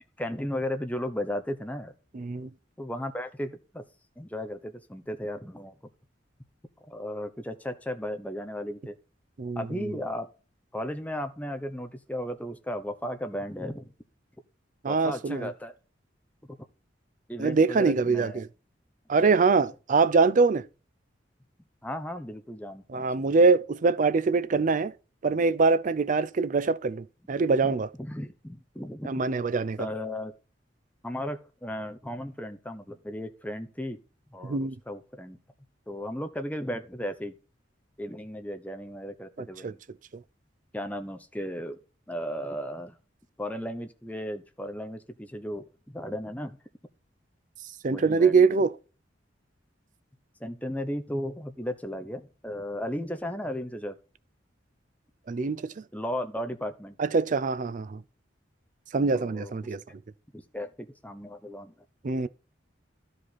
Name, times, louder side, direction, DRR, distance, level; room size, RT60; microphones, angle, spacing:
voice 1, 0.0-1.9 2.8-3.8 4.2-5.8 6.9-9.0 9.6-10.3 10.7-13.9 14.8-15.7 16.5-16.6 17.3-18.4 19.2-19.3 21.8-23.3 27.6-29.1 29.8-30.3 31.0-34.0 34.3-35.4 35.9-37.3 38.0-39.8 40.7-41.8 42.1-42.9 43.4-46.6 47.9-48.6 50.4-54.0 55.9-57.0 59.1-59.7 60.3-61.7, equal, 10° left, 0.9 m, -35 dB
voice 2, 2.1-2.5 9.4-9.9 14.8-15.5 17.4-18.5 19.1-20.6 22.9-24.9 25.2-27.9 29.1-29.9 34.4-34.8 39.4-39.7 47.8-48.7 55.3-55.7 57.0-58.0 58.9-59.8 62.0-62.3, right 4 dB, 45° right, 0.4 m, -24 dB
12.5 x 5.1 x 4.1 m
head